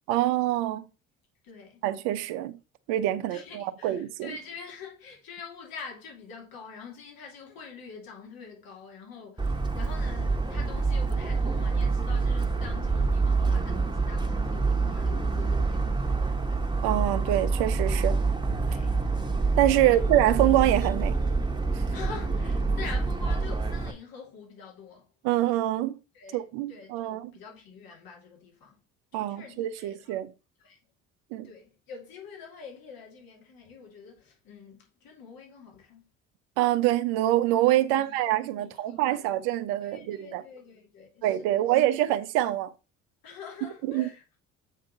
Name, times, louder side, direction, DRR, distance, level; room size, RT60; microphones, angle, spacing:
voice 1, 0.1-0.9 1.8-2.5 2.9-4.3 16.8-18.2 19.6-21.1 21.7-21.8 25.2-26.0 26.3-27.3 29.1-30.3 31.3-31.5 36.6-40.4 41.2-42.7 43.8-44.1, right 14 dB, 75° right, 0.8 m, -25 dB
voice 2, 1.4-1.8 3.2-16.4 18.6-19.1 19.8-20.0 21.9-25.1 26.1-26.4 26.7-28.8 29.1-30.1 30.6-30.8 31.4-36.1 37.9-39.4 39.8-41.8 43.2-44.4, left 5 dB, 65° left, 2.8 m, -45 dB
Motor vehicle (road) / Siren, 9.4-23.9, right 4 dB, 10° right, 1.5 m, -27 dB
8.2 x 3.7 x 5.5 m
hypercardioid pair, 55°, 38 cm